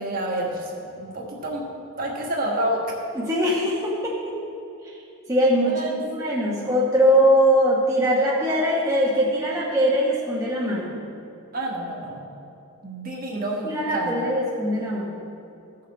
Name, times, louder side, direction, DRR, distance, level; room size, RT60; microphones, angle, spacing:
voice 1, 0.0-1.7 2.0-2.8 5.6-5.9 6.4-6.5 11.5-12.2 12.8-14.3, right 1 dB, 40° right, -1 dB, 1.4 m, -29 dB
voice 2, 3.1-4.4 4.8-5.0 5.3-10.9 13.6-15.2, equal, 15° right, -6 dB, 1.0 m, -21 dB
14.5 x 6.7 x 4.2 m, 2.6 s
head